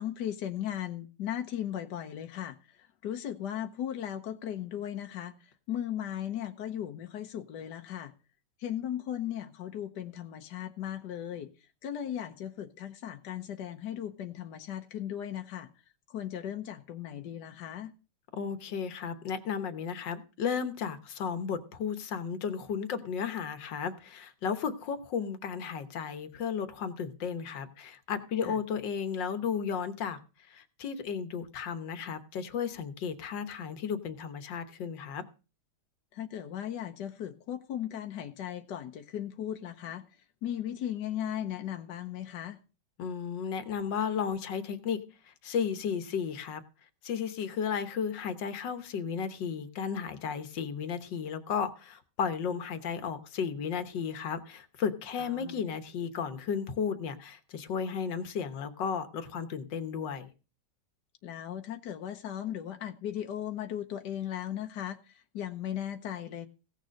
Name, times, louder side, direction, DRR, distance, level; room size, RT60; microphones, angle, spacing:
voice 1, 0.0-5.3 5.7-8.1 8.6-11.5 11.8-15.7 16.1-17.9 28.4-28.6 36.1-40.0 40.4-42.6 55.2-55.6 61.2-66.5, left 10 dB, 70° left, 6 dB, 1.5 m, -37 dB
voice 2, 18.3-30.2 30.5-35.2 43.0-45.0 45.4-46.6 47.0-60.3, left 7 dB, 90° left, 10 dB, 1.8 m, -34 dB
16.5 x 6.7 x 6.3 m, 0.34 s
omnidirectional pair, 1.9 m